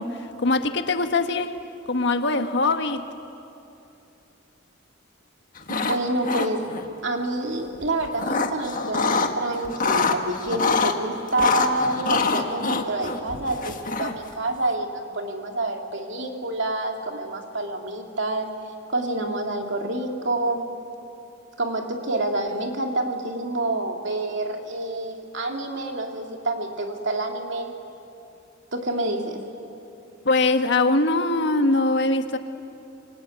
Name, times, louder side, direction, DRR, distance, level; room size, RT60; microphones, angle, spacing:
voice 1, 0.0-1.5 1.9-3.1 30.2-32.4, left 2 dB, 60° left, 7 dB, 1.5 m, -22 dB
sound 1, 5.6-6.0 6.2-6.9 7.8-9.3 9.6-10.9 11.4-14.3, left 4 dB, 45° left, 1.5 m, -24 dB
voice 2, 5.7-6.6 7.0-18.5 18.9-20.7 21.6-27.7 28.7-29.4, right 2 dB, 65° right, 3 dB, 2.8 m, -28 dB
26.5 x 23.5 x 9.4 m, 2.7 s
head